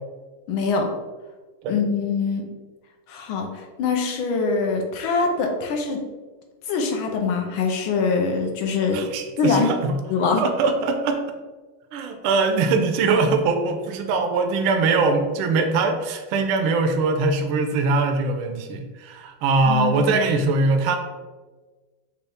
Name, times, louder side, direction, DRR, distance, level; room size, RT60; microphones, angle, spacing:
voice 1, 0.5-0.9 1.7-2.5 3.1-3.5 3.8-6.0 6.7-9.0 9.4-9.7 10.1-10.4 19.7-20.3, left 4 dB, 75° left, 3 dB, 1.4 m, -23 dB
voice 2, 8.9-10.0 10.4-11.2 11.9-21.0, right 3 dB, 75° right, 5 dB, 1.4 m, -22 dB
6.7 x 2.3 x 3.4 m, 1.3 s
omnidirectional pair, 2.4 m